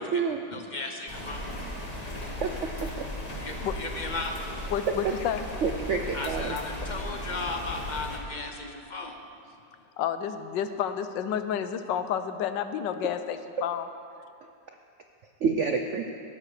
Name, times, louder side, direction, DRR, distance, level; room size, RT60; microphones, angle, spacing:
voice 1, 0.0-0.4 2.4-2.9 5.6-6.6 15.4-16.1, right 5 dB, 75° right, 4 dB, 0.6 m, -28 dB
voice 2, 0.5-1.5 3.4-4.5 6.1-9.2, left 3 dB, 55° left, 3 dB, 0.5 m, -36 dB
sound 1, 1.1-8.2, left 1 dB, 25° left, 1.5 m, -36 dB
voice 3, 4.7-5.5 10.0-13.9, left 9 dB, 80° left, 10 dB, 1.3 m, -30 dB
19.0 x 11.5 x 3.3 m, 2.4 s
omnidirectional pair, 2.0 m